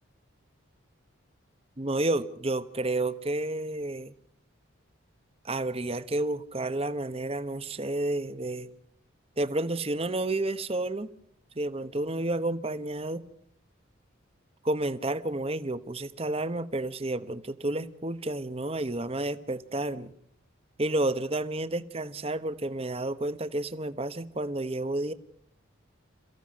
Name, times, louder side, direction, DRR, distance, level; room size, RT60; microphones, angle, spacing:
voice 1, 1.8-4.1 5.4-8.7 9.4-11.1 11.6-13.2 14.6-20.1 20.8-25.1, right 2 dB, 30° right, 1.0 m, -30 dB
28.5 x 15.5 x 6.4 m
head